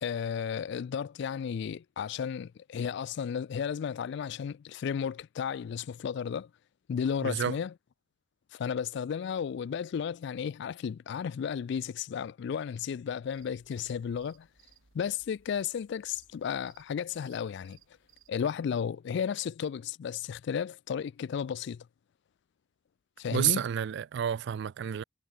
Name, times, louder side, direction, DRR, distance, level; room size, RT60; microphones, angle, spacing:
voice 1, 0.0-6.5 6.9-7.7 8.5-14.5 14.9-17.8 18.3-21.9 23.2-23.6, left 7 dB, 60° left, 0.3 m, -33 dB
voice 2, 7.2-7.6 23.3-25.0, right 9 dB, 55° right, 0.3 m, -30 dB
sound 1, 13.2-18.3, right 7 dB, 75° right, 1.7 m, -63 dB
head